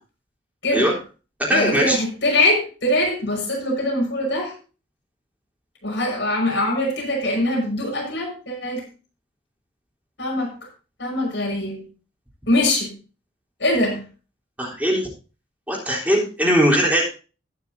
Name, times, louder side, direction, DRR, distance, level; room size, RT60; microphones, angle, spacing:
voice 1, 0.6-0.9 1.5-4.5 5.8-8.8 10.2-10.5 11.0-11.9 12.5-12.9 13.6-14.0, left 1 dB, 70° left, 0 dB, 5.6 m, -22 dB
voice 2, 1.4-2.0 14.6-15.1 15.7-17.1, equal, 10° right, -4 dB, 3.7 m, -20 dB
20.5 x 6.9 x 2.7 m, 0.34 s
head